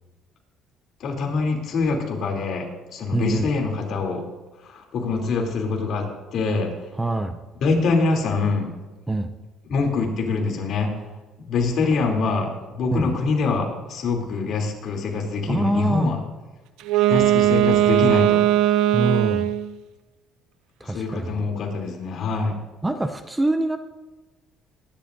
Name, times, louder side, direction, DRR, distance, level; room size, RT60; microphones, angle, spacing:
voice 1, 1.0-2.7 2.9-4.2 4.6-6.7 7.6-8.7 9.7-10.9 11.5-16.2 17.1-18.4 20.8-22.5, left 4 dB, 55° left, 1 dB, 3.0 m, -24 dB
voice 2, 3.1-3.5 7.0-7.4 9.1-9.3 12.9-13.1 15.5-16.1 18.9-19.5 20.8-21.5 22.8-23.8, right 2 dB, 10° right, 9 dB, 0.5 m, -24 dB
Wind instrument woodwind instrument, 16.8-19.7, right 13 dB, 80° right, 0.6 m, -19 dB
22.5 x 11.5 x 2.6 m, 1.2 s
cardioid pair, 145°, 0 cm